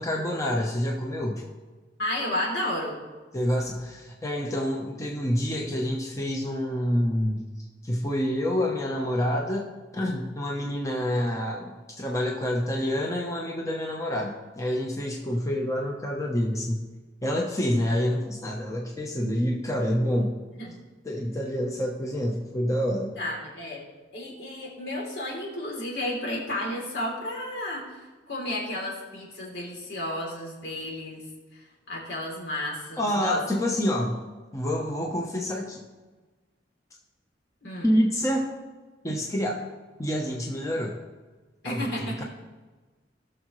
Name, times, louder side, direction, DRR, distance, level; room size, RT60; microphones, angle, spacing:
voice 1, 0.0-1.4 3.3-7.4 7.8-9.7 9.9-16.9 17.2-20.3 21.0-23.1 33.0-34.2 34.5-35.8 37.8-38.5 39.0-39.6 40.0-41.0 41.6-41.9 42.2-42.3, equal, 15° left, -1 dB, 0.9 m, -27 dB
voice 2, 2.0-3.0 20.6-20.8 23.2-23.8 24.1-31.2 31.5-33.4 37.6-37.9 41.6-42.2, left 1 dB, 70° left, -3 dB, 3.1 m, -32 dB
18.5 x 6.5 x 3.2 m, 1.3 s
head